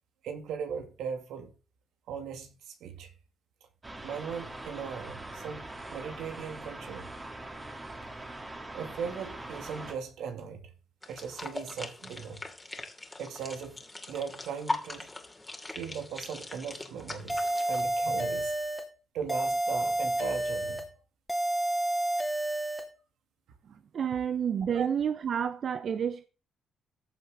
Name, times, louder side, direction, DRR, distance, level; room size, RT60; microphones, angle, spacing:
voice 1, 0.2-1.5 2.1-3.1 4.0-7.1 8.7-10.7 11.1-12.4 13.2-13.8 14.1-15.1 15.8-18.5 19.1-20.8 24.7-25.0, right 6 dB, 80° right, 2.4 m, -38 dB
sound 1, 3.8-9.9, right 2 dB, 20° right, 2.7 m, -42 dB
sound 2, 11.0-17.8, left 2 dB, 15° left, 2.6 m, -40 dB
sound 3, 17.3-18.9 19.3-20.9 21.3-22.9, right 1 dB, 5° right, 2.7 m, -30 dB
voice 2, 23.9-26.2, right 8 dB, 55° right, 0.8 m, -29 dB
15.0 x 6.6 x 3.8 m
cardioid pair, 90°, 0 cm